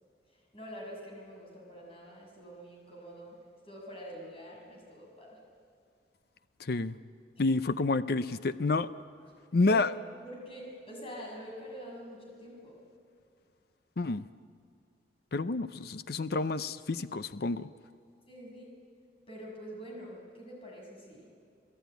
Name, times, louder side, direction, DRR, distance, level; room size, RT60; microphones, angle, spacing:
voice 1, 0.5-3.4 3.7-5.4 7.4-7.5 9.6-9.9 10.2-12.7 16.3-16.4 18.3-18.7 19.3-21.3, equal, 30° left, -1 dB, 6.9 m, -46 dB
voice 2, 7.4-8.9 9.5-9.9 14.0-14.2 15.3-17.7, left 3 dB, 60° left, 13 dB, 0.6 m, -29 dB
28.5 x 17.5 x 9.3 m, 2.4 s
head